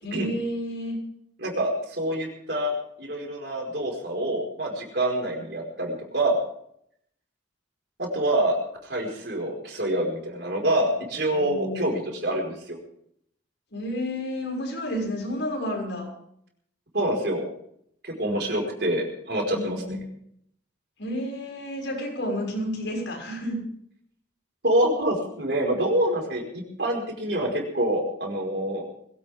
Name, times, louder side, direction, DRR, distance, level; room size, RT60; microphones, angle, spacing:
voice 1, 0.0-1.0 11.3-12.1 13.7-16.1 19.5-19.9 21.0-23.6, equal, 75° left, 0 dB, 6.5 m, -31 dB
voice 2, 1.4-6.4 8.0-8.6 8.8-12.8 16.9-17.5 18.0-20.0 24.6-28.8, right 1 dB, 60° right, 0 dB, 5.1 m, -26 dB
22.0 x 17.0 x 3.7 m, 0.70 s
head